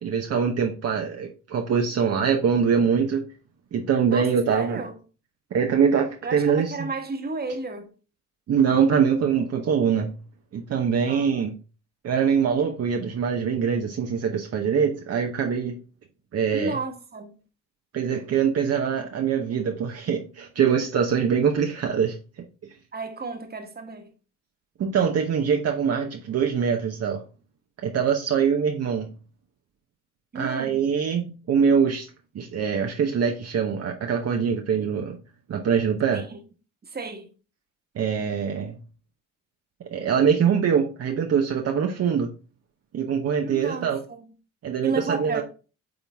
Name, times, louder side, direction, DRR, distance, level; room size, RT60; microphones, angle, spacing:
voice 1, 0.0-3.2 3.7-4.8 5.5-6.7 8.5-10.1 10.5-11.5 12.0-15.8 16.3-16.8 17.9-22.2 24.8-27.2 27.8-29.1 30.3-32.1 32.3-35.2 35.5-36.2 37.9-38.8 39.9-42.3 42.9-44.0 44.6-45.4, right 7 dB, 55° right, 1.0 m, -23 dB
voice 2, 4.1-5.0 6.2-7.9 11.1-11.4 16.5-17.4 22.9-24.1 30.3-30.9 36.1-36.4 36.8-37.3 43.4-44.3 44.8-45.4, right 3 dB, 30° right, 1.5 m, -33 dB
8.8 x 3.8 x 3.5 m
cardioid pair, 90°, 30 cm